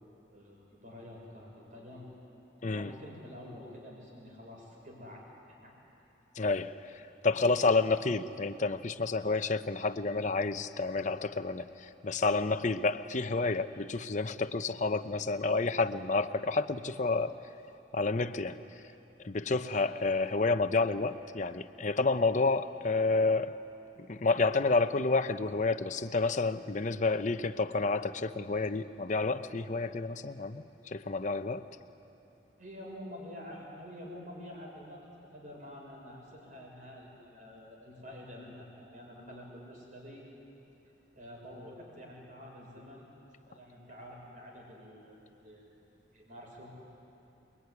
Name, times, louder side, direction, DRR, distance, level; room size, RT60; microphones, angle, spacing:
voice 1, 0.3-2.1 2.7-5.7 32.6-35.0 35.3-40.2 41.1-43.1 43.5-45.7 46.1-46.7, left 1 dB, 45° right, 6.4 m, -48 dB
voice 2, 6.4-6.7 7.2-17.4 17.9-18.6 19.2-23.6 24.1-30.6 30.9-31.7, left 3 dB, 45° left, 0.8 m, -29 dB
26.5 x 22.5 x 9.7 m
head